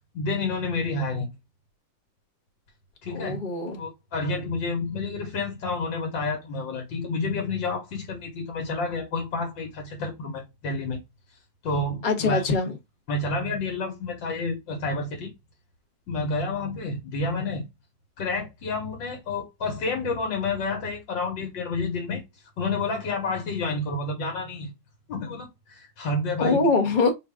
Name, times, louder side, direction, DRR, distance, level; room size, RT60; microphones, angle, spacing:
voice 1, 0.1-1.3 3.0-3.4 3.8-11.0 11.6-12.5 13.1-15.3 16.1-17.7 18.2-22.2 22.6-24.7 25.1-26.6, left 3 dB, 75° left, 1.9 m, -29 dB
voice 2, 3.1-3.8 12.0-12.8 26.4-27.1, left 4 dB, 30° left, 0.9 m, -23 dB
4.9 x 2.5 x 3.4 m
omnidirectional pair, 2.0 m